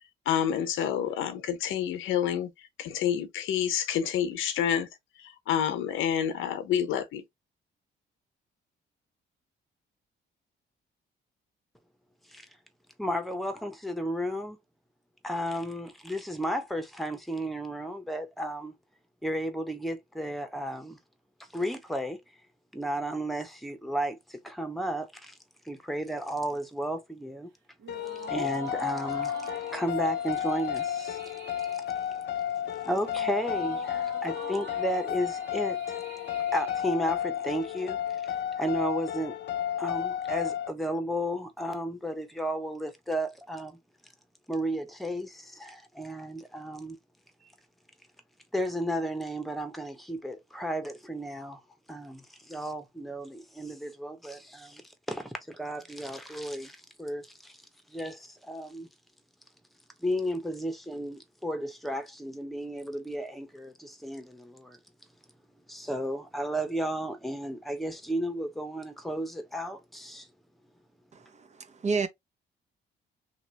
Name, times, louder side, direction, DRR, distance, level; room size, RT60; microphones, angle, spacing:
voice 1, 0.3-2.5 2.8-4.9 5.2-7.2, left 9 dB, 85° left, 0.8 m, -28 dB
voice 2, 13.0-14.6 15.2-18.7 19.2-21.0 21.5-22.2 22.7-25.3 25.6-27.5 28.3-31.2 32.6-36.0 36.5-38.0 38.2-39.4 39.8-43.8 44.5-47.0 47.4-47.5 48.5-51.6 51.9-57.6 57.9-58.9 60.0-64.8 65.7-70.3, equal, ahead, 0.9 m, -33 dB
sound 1, 27.8-37.5, right 6 dB, 75° right, 1.5 m, -46 dB
sound 2, 27.9-40.7, left 10 dB, 60° left, 0.5 m, -32 dB
voice 3, 71.1-72.1, right 4 dB, 35° right, 0.7 m, -31 dB
2.9 x 2.9 x 2.8 m
cardioid pair, 90°, 20 cm